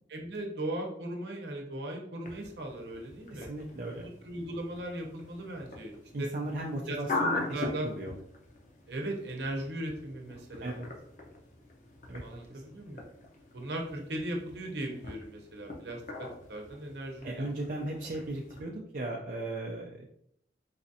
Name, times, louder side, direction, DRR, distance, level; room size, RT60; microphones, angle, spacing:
voice 1, 0.1-3.5 3.8-3.9 4.2-6.3 6.9-7.0 7.5-7.9 8.9-10.8 12.2-13.0 13.5-17.4, right 1 dB, 70° right, 1 dB, 0.8 m, -38 dB
sound 1, 2.2-18.6, left 2 dB, 45° left, 0.7 m, -42 dB
voice 2, 3.3-4.1 6.1-8.2 10.6-10.9 12.1-12.2 12.5-12.6 17.2-20.1, right 2 dB, 50° right, -2 dB, 0.4 m, -37 dB
4.0 x 2.5 x 2.7 m, 0.70 s
head